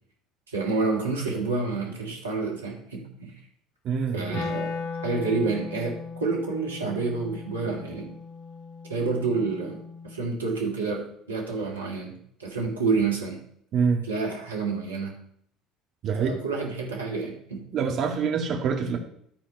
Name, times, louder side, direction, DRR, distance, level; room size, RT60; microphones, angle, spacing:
voice 1, 0.5-3.3 4.1-8.1 8.9-9.8 10.0-12.1 12.4-13.4 14.0-15.1 16.2-17.6, right 4 dB, 85° right, -1 dB, 2.1 m, -29 dB
voice 2, 3.8-4.3 13.7-14.0 16.0-16.4 17.7-19.0, right 6 dB, 50° right, 2 dB, 2.0 m, -25 dB
Wind instrument woodwind instrument, 4.3-10.4, left 5 dB, 60° left, 1.0 m, -37 dB
12.5 x 4.3 x 5.5 m, 0.67 s
figure-of-eight pair, 60°, 0 cm